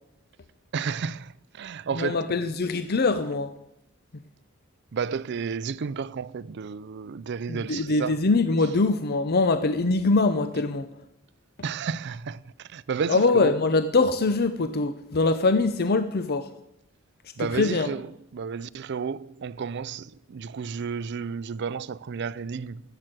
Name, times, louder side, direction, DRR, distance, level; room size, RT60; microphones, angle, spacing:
voice 1, 0.7-2.3 4.9-8.2 11.6-13.5 17.4-22.8, right 6 dB, 55° right, 0.4 m, -32 dB
voice 2, 1.9-3.5 7.5-10.9 13.1-16.5 17.4-17.9, left 3 dB, 50° left, 0.6 m, -23 dB
12.0 x 7.9 x 9.0 m
head